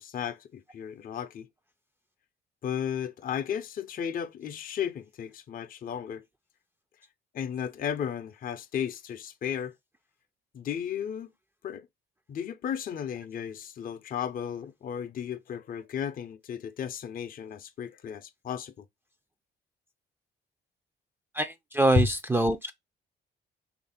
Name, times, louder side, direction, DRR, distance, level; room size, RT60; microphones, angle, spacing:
voice 1, 0.0-1.5 2.6-6.2 7.3-9.8 10.5-11.3 11.6-11.9 12.3-18.8 22.0-22.1, left 8 dB, 45° left, 0.5 m, -34 dB
voice 2, 21.3-22.7, right 2 dB, 10° right, 0.4 m, -25 dB
3.2 x 2.5 x 4.0 m
cardioid pair, 90°, 20 cm